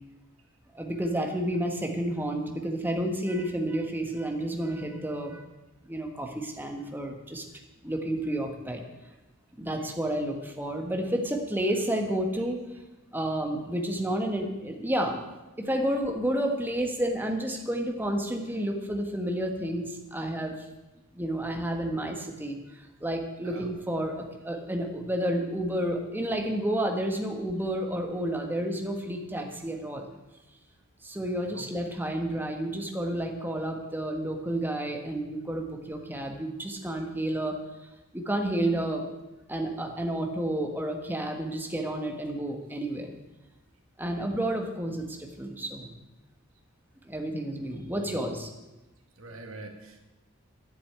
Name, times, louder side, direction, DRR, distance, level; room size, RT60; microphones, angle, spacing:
voice 1, 0.7-5.4 5.9-7.4 7.8-8.8 9.6-12.6 13.1-15.1 15.6-20.7 21.1-30.1 31.0-37.5 38.1-39.0 39.5-43.1 44.0-45.9 47.0-48.5, right 1 dB, 10° right, 3 dB, 1.4 m, -30 dB
voice 2, 47.9-48.2 49.2-50.1, right 2 dB, 85° right, 3 dB, 2.0 m, -45 dB
9.9 x 8.2 x 8.7 m, 1.1 s
head